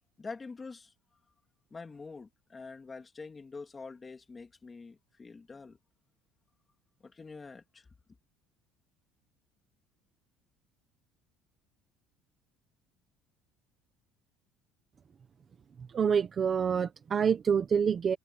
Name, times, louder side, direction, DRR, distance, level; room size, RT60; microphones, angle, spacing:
voice 1, 0.2-0.9 1.7-5.8 7.0-7.9, left 4 dB, 15° left, 2.8 m, -45 dB
voice 2, 15.9-18.2, right 7 dB, 25° right, 1.0 m, -27 dB
cardioid pair, 175°, 0 cm